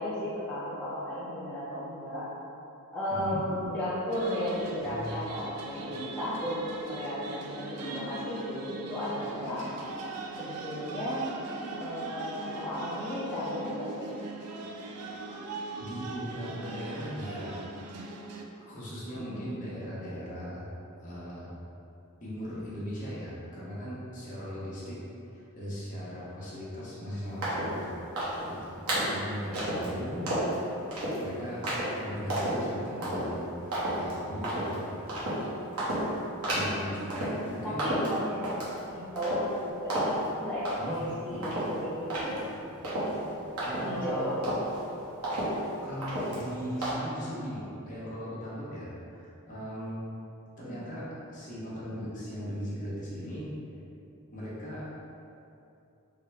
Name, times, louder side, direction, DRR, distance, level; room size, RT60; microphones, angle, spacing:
voice 1, 0.0-2.2 2.9-9.7 10.4-11.3 11.8-14.1 19.1-19.5 28.9-29.2 29.7-29.8 37.6-38.4 38.9-39.4 39.8-42.3 43.8-44.4 50.7-50.8, left 1 dB, 5° left, -12 dB, 0.4 m, -34 dB
voice 2, 3.1-3.4 4.8-5.0 15.8-17.6 18.6-20.7 21.0-21.5 22.2-25.0 25.5-28.8 29.1-30.3 31.2-31.6 31.9-35.3 36.4-37.9 40.8-41.0 41.3-41.4 43.6-44.3 44.9-45.1 45.8-50.0 50.6-53.5 54.3-54.9, equal, 35° left, -8 dB, 0.9 m, -38 dB
sound 1, 4.1-18.4, right 3 dB, 90° right, 0.4 m, -40 dB
sound 2, 7.7-8.3 9.1-9.8 10.2-10.6 11.4-12.6, equal, 65° left, 0.7 m, -46 dB
sound 3, 27.4-27.8 28.2-28.5 28.9-29.2 29.5-29.9 30.3-30.6 30.9-31.2 31.6-31.9 32.3-32.6 33.0-33.3 33.7-34.1 34.4-34.8 35.1-35.4 35.8-36.1 36.4-36.8 37.1-37.5 37.8-38.8 39.2-39.6 39.9-40.3 40.7-41.1 41.4-44.1 44.4-44.8 45.2-45.7 46.0-46.5 46.8-46.9, right 1 dB, 75° right, 0.9 m, -31 dB
3.7 x 2.1 x 3.3 m, 2.8 s
head